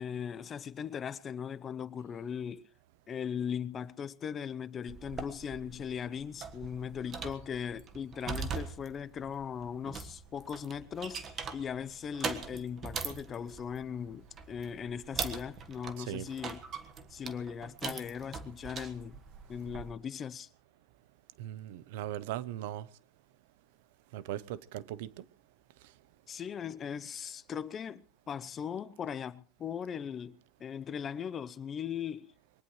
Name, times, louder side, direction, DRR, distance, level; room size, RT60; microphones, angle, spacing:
voice 1, 0.0-2.7 3.1-16.6 17.1-19.2 19.5-20.5 26.3-32.3, left 7 dB, 30° left, 0.7 m, -39 dB
sound 1, 4.9-19.9, right 5 dB, 30° right, 1.5 m, -42 dB
voice 2, 16.0-16.3 21.4-22.9 24.1-25.2, right 12 dB, 85° right, 0.8 m, -39 dB
23.0 x 19.0 x 3.2 m
supercardioid pair, 145°, 0 cm